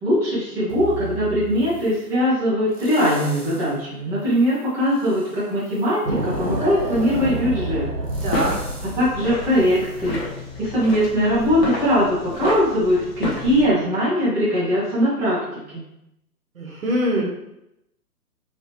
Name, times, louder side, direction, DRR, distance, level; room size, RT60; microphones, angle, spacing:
voice 1, 0.0-7.9 8.8-10.2 10.6-15.8, equal, 5° right, -11 dB, 0.8 m, -21 dB
sound 1, 0.7-2.1 2.7-3.8 4.2-10.9 11.4-11.5, right 4 dB, 25° right, 0.4 m, -37 dB
sound 2, 6.1-9.8, right 1 dB, 80° right, 1.4 m, -28 dB
sound 3, 8.1-13.6, left 2 dB, 40° left, 1.0 m, -31 dB
voice 2, 8.2-8.6 16.5-17.2, right 1 dB, 60° right, -1 dB, 1.2 m, -23 dB
3.6 x 3.0 x 2.8 m, 0.83 s
figure-of-eight pair, 130°, 47 cm